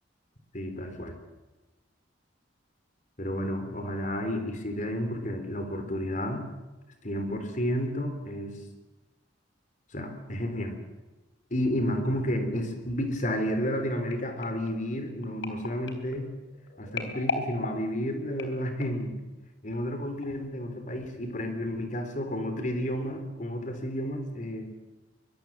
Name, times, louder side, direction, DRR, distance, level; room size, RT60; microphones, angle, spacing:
voice 1, 0.5-1.2 3.2-6.4 7.0-8.6 9.9-10.8 11.5-16.3 16.8-19.2 19.6-24.7, equal, 40° left, 7 dB, 3.9 m, -31 dB
sound 1, 14.1-19.1 19.7-19.9 20.2-20.3, left 3 dB, 75° left, 3.6 m, -38 dB
23.5 x 21.5 x 7.6 m, 1.1 s
head